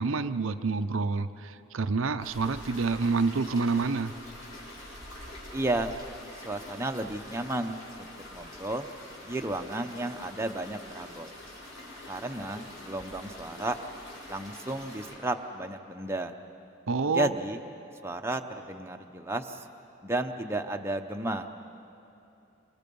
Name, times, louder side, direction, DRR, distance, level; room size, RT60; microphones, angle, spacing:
voice 1, 0.0-4.1 16.9-17.3, right 4 dB, 65° right, 9 dB, 0.6 m, -28 dB
sound 1, 2.2-15.1, left 1 dB, 65° left, 7.0 m, -45 dB
voice 2, 5.5-6.0 6.4-8.9 9.2-11.3 12.1-13.8 14.3-16.4 17.1-17.6 18.0-19.6 20.0-21.5, right 2 dB, 10° right, 4 dB, 0.8 m, -33 dB
28.5 x 25.5 x 5.4 m, 2.8 s
head